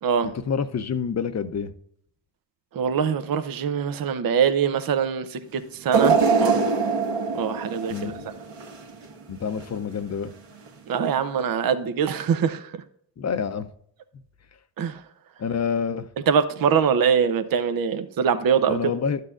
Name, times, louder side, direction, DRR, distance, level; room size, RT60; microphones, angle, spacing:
voice 1, 0.2-1.7 7.9-8.3 9.3-10.3 13.2-13.7 15.4-16.1 18.7-19.2, left 6 dB, 35° left, 12 dB, 0.7 m, -27 dB
voice 2, 2.7-6.7 7.3-8.1 10.9-12.8 14.8-15.0 16.3-18.9, right 7 dB, 50° right, 10 dB, 0.8 m, -23 dB
sound 1, 5.9-9.1 9.5-9.6 10.7-10.8, right 5 dB, 65° right, 1.7 m, -23 dB
12.0 x 6.5 x 2.5 m, 0.66 s
supercardioid pair, 55°, 47 cm